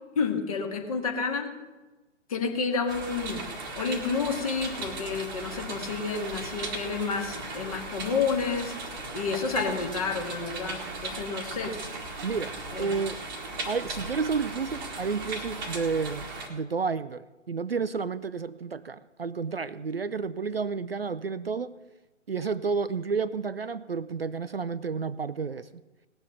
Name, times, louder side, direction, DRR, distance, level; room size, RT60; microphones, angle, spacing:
voice 1, 0.2-1.5 2.3-11.8 12.7-12.9, left 5 dB, 30° left, 3 dB, 2.0 m, -30 dB
sound 1, 2.9-16.5, right 3 dB, 15° right, 1.5 m, -37 dB
voice 2, 12.2-13.2 13.7-21.8 22.3-25.7, right 5 dB, 50° right, 14 dB, 0.5 m, -31 dB
18.0 x 7.0 x 7.1 m, 1.1 s
figure-of-eight pair, 145°, 37 cm